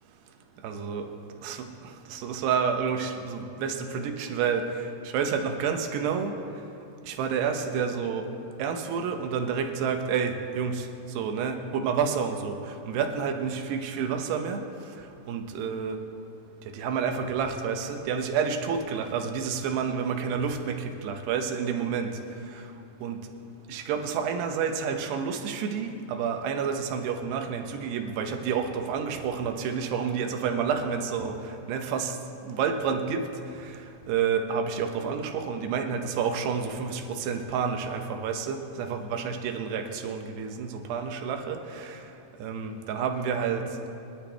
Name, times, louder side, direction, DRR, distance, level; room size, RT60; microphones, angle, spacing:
voice 1, 0.6-1.1 1.4-1.7 2.1-4.7 5.1-6.3 7.1-8.3 8.6-10.9 11.2-12.6 12.9-14.6 15.3-16.0 16.7-22.2 23.0-23.3 23.7-31.4 31.7-32.1 32.5-33.3 34.1-42.0 42.4-43.7, right 6 dB, 90° right, 5 dB, 3.1 m, -29 dB
22.5 x 12.0 x 3.4 m, 2.7 s
omnidirectional pair, 4.6 m